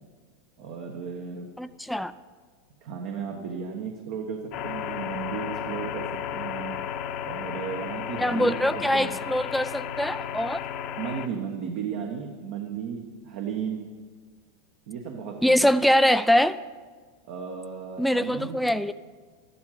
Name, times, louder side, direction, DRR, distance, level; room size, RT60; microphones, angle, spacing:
voice 1, 0.6-1.5 2.8-6.8 7.2-9.1 11.0-13.9 14.9-15.7 17.3-18.6, right 7 dB, 60° right, 2 dB, 1.4 m, -34 dB
voice 2, 1.6-2.1 8.2-10.6 15.4-16.6 18.0-18.9, equal, ahead, 11 dB, 0.4 m, -23 dB
sound 1, 4.5-11.3, left 9 dB, 50° left, 0.9 m, -33 dB
13.0 x 11.5 x 5.0 m, 1.5 s
hypercardioid pair, 110°, 0 cm